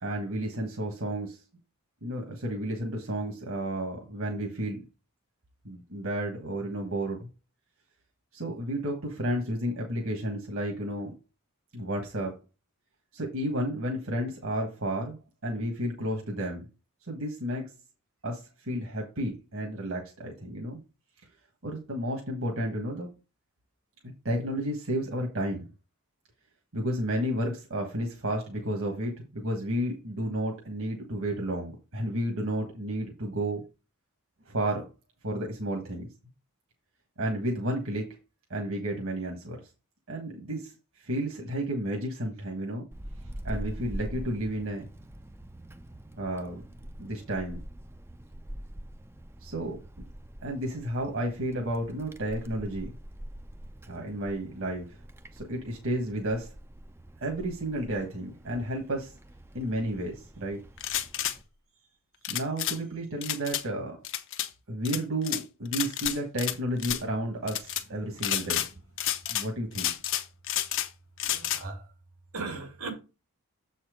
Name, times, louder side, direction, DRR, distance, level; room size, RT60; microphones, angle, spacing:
voice 1, 0.0-1.4 2.0-4.8 5.6-7.3 8.3-11.1 11.7-12.4 13.1-16.6 17.1-17.6 18.2-20.8 21.6-23.1 24.2-25.6 26.7-33.6 34.5-34.9 35.2-36.1 37.2-38.1 38.5-39.6 40.1-40.7 41.0-42.8 43.4-44.8 46.2-46.6 47.0-47.6 49.4-49.8 50.4-52.9 53.9-54.9 55.3-56.5 57.2-59.1 59.5-60.6 62.3-64.0 64.7-68.6 69.3-69.9, right 1 dB, 60° right, 1.5 m, -32 dB
Wind, 42.9-61.4, equal, 10° right, 0.4 m, -44 dB
sound 1, 60.8-61.4 62.2-62.8 63.2-63.6 64.0-64.5 64.8-65.4 65.7-66.5 66.8-67.0 67.5-67.8 68.2-68.7 69.0-69.5 69.7-70.9 71.2-71.6, left 12 dB, 60° left, 0.8 m, -30 dB
voice 2, 71.2-71.9 72.3-72.9, right 3 dB, 85° right, 2.3 m, -37 dB
7.4 x 4.3 x 5.0 m
head